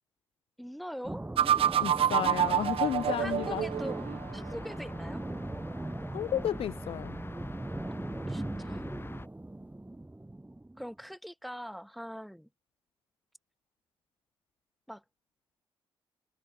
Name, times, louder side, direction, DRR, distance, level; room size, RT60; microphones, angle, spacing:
voice 1, 0.6-1.2 3.2-5.2 8.3-9.0 10.8-12.5 14.9-15.0, equal, ahead, 2.9 m, -42 dB
sound 1, 1.0-10.9, right 2 dB, 15° right, 3.4 m, -39 dB
sound 2, 1.4-4.3, right 10 dB, 70° right, 0.7 m, -27 dB
voice 2, 1.8-3.7 6.1-7.2, left 11 dB, 75° left, 0.5 m, -32 dB
sound 3, 2.2-9.3, left 2 dB, 25° left, 1.7 m, -46 dB
supercardioid pair, 60°, 10 cm